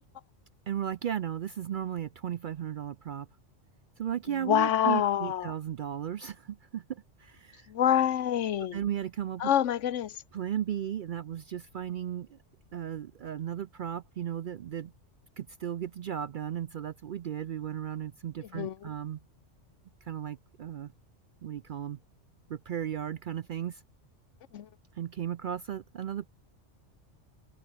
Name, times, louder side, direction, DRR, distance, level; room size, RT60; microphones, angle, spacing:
voice 1, 0.7-3.3 4.0-7.7 8.7-9.5 10.3-12.4 12.7-14.9 15.4-19.2 20.0-20.9 21.4-22.0 22.5-23.8 25.0-26.3, right 10 dB, 60° right, 0.5 m, -35 dB
voice 2, 4.3-5.5 7.7-8.8 9.4-10.2 18.5-18.9 24.5-24.7, left 10 dB, 75° left, 1.1 m, -27 dB
open air
omnidirectional pair, 1.3 m